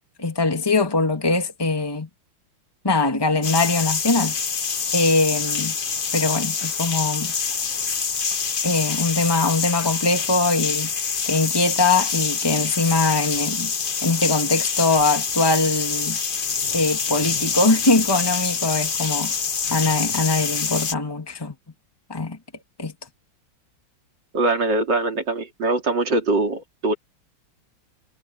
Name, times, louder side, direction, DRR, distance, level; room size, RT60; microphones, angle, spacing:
voice 1, 0.2-2.1 2.8-4.4 4.9-5.7 6.1-7.3 8.6-10.9 11.3-13.7 14.0-16.2 16.7-19.3 19.7-21.5 22.1-22.4 22.8-22.9, left 3 dB, 10° left, 2.4 m, -22 dB
sound 1, 3.4-20.9, left 6 dB, 40° left, 0.8 m, -26 dB
sound 2, 7.4-9.0 9.2-9.3 11.2-11.3 11.9-20.3, left 5 dB, 70° left, 3.0 m, -35 dB
voice 2, 24.3-26.9, right 2 dB, 65° right, 3.6 m, -22 dB
omnidirectional pair, 2.1 m